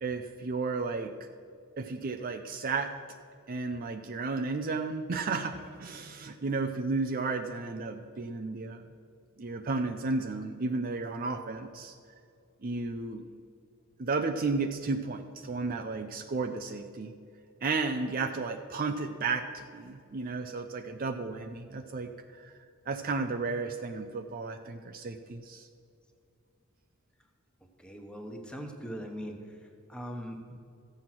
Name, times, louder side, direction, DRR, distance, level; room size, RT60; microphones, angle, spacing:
voice 1, 0.0-1.1 1.8-2.9 3.5-8.8 9.4-11.9 12.6-13.3 14.0-17.1 17.6-22.1 22.4-22.5 22.9-25.7, right 3 dB, 40° right, 7 dB, 0.5 m, -33 dB
voice 2, 27.8-29.6 29.9-30.6, equal, 5° left, 3 dB, 1.1 m, -40 dB
14.0 x 7.7 x 5.9 m, 2.5 s
head